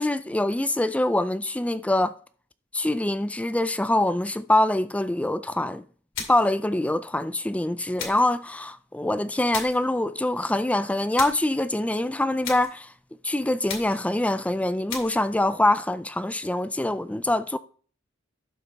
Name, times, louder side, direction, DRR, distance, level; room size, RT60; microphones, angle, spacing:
voice 1, 0.0-2.1 2.7-5.8 6.3-12.9 13.2-17.6, left 1 dB, 5° left, 0.4 m, -24 dB
sound 1, 6.1-6.6 8.0-8.4 9.5-9.9 11.2-11.5 12.4-12.8 13.7-14.1 14.9-15.3, left 6 dB, 70° left, 2.3 m, -36 dB
11.5 x 5.9 x 3.4 m
head